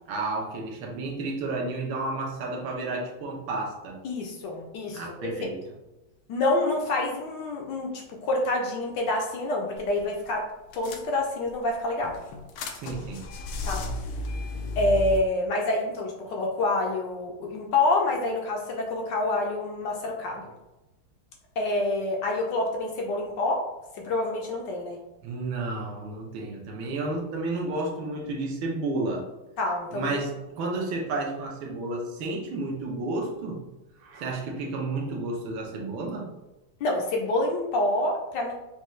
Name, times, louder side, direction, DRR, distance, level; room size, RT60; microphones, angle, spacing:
voice 1, 0.1-4.0 4.9-5.6 12.7-13.2 25.2-29.3 29.9-33.6 34.0-36.3, right 2 dB, 75° right, 0 dB, 1.5 m, -31 dB
voice 2, 4.0-5.3 6.3-10.4 10.7-12.2 13.6-13.8 14.8-20.5 21.6-23.6 23.9-25.0 29.6-30.2 36.8-38.5, left 2 dB, 70° left, 0 dB, 1.1 m, -27 dB
sound 1, 9.8-10.0 10.3-10.4 10.7-11.5 12.0-15.2, left 2 dB, 85° left, 1.5 m, -34 dB
5.4 x 2.3 x 3.1 m, 1.0 s
omnidirectional pair, 2.3 m